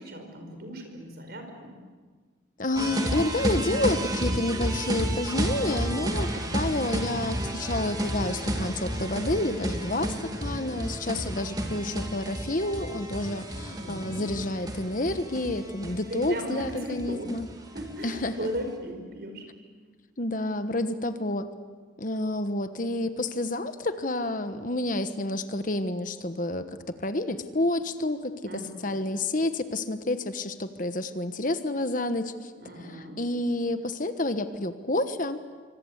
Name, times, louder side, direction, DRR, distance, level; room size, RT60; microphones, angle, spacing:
voice 1, 0.0-1.7 9.8-10.3 13.7-14.3 16.1-17.3 17.7-19.5 19.8-20.0 28.4-29.0 32.6-33.2, right 1 dB, 55° right, 5 dB, 5.2 m, -37 dB
voice 2, 2.6-10.1 10.4-17.5 18.0-18.5 20.2-21.5 22.0-32.5 32.8-35.4, left 2 dB, 45° left, 10 dB, 1.3 m, -29 dB
sound 1, 2.8-18.6, right 1 dB, 20° right, 2.5 m, -31 dB
26.0 x 25.5 x 8.2 m, 1.5 s
head